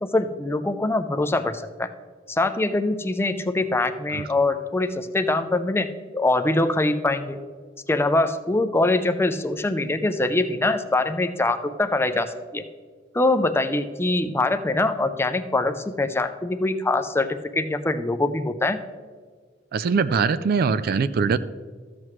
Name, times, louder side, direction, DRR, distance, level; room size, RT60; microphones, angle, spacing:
voice 1, 0.0-1.9 2.3-5.9 6.1-7.4 7.9-12.6 13.1-18.8, left 2 dB, 15° left, 9 dB, 0.5 m, -23 dB
voice 2, 19.7-21.4, right 5 dB, 55° right, 15 dB, 0.3 m, -22 dB
13.0 x 7.7 x 3.1 m, 1.5 s
head